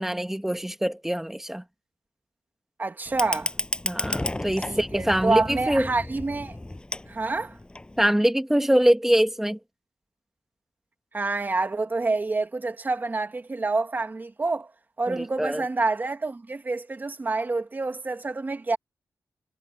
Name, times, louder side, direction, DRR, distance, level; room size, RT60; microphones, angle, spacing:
voice 1, 0.0-1.6 3.8-5.9 8.0-9.6 15.1-15.6, equal, 5° right, 1.5 m, -24 dB
voice 2, 2.8-3.5 4.7-6.6 7.1-7.6 11.1-14.7 15.0-18.8, right 3 dB, 30° right, 2.5 m, -27 dB
Fire, 3.1-8.1, left 1 dB, 15° left, 7.1 m, -33 dB
wide cardioid pair, 120°, 6 cm